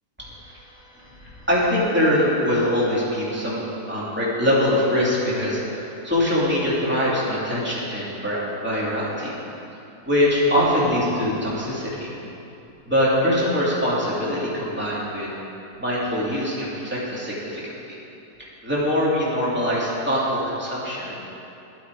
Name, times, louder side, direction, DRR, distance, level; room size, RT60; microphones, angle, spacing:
voice 1, 0.2-0.6 0.9-9.4 10.1-12.1 12.9-15.3 15.8-17.7 18.4-21.2, left 1 dB, 5° right, -8 dB, 2.6 m, -23 dB
12.5 x 10.5 x 4.8 m, 2.8 s
omnidirectional pair, 1.8 m